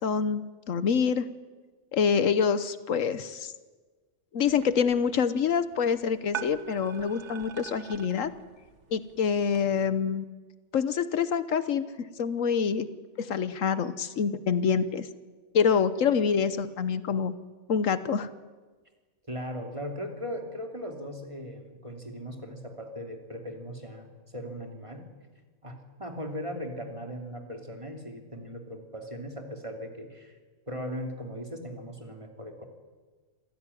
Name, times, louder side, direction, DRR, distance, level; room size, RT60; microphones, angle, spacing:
voice 1, 0.0-1.3 1.9-3.5 4.3-8.3 8.9-10.2 10.7-11.8 12.2-12.9 13.2-15.1 15.5-17.3 17.7-18.3, left 6 dB, 75° left, 13 dB, 1.3 m, -26 dB
sound 1, 4.5-9.6, right 8 dB, 60° right, 1.6 m, -44 dB
voice 2, 19.3-25.0 25.6-30.3 30.7-32.6, equal, 25° right, 3 dB, 3.0 m, -38 dB
26.0 x 15.5 x 9.9 m, 1.4 s
omnidirectional pair, 1.3 m